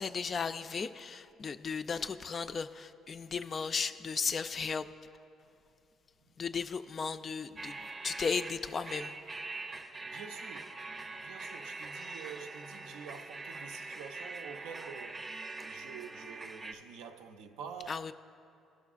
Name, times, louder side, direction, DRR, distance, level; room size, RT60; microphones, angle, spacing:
voice 1, 0.0-4.9 6.4-9.2 17.9-18.1, left 5 dB, 45° left, 0.3 m, -35 dB
sound 1, 7.6-16.7, right 3 dB, 35° right, 0.6 m, -43 dB
voice 2, 10.0-10.8 11.1-18.1, right 7 dB, 90° right, 0.5 m, -48 dB
17.0 x 6.1 x 2.4 m
supercardioid pair, 75°, 0 cm